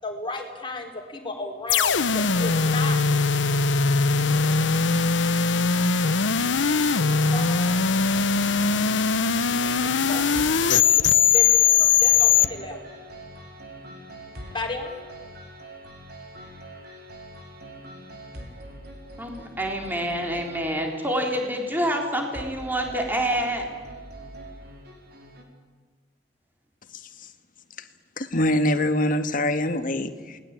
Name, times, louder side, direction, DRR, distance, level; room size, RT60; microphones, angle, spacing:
voice 1, 0.0-3.0 4.1-4.6 6.2-6.3 7.3-7.7 9.8-11.5 11.7-12.8 14.5-14.9, left 2 dB, 25° left, 3 dB, 4.6 m, -34 dB
sound 1, 1.7-12.5, left 5 dB, 80° left, 0.9 m, -21 dB
sound 2, 6.5-25.4, right 1 dB, 60° right, 4.7 m, -43 dB
voice 2, 19.2-23.7, equal, 10° right, 2 dB, 3.7 m, -27 dB
voice 3, 28.2-30.4, left 1 dB, 45° left, 8 dB, 1.9 m, -24 dB
28.5 x 20.5 x 8.9 m, 1.5 s
head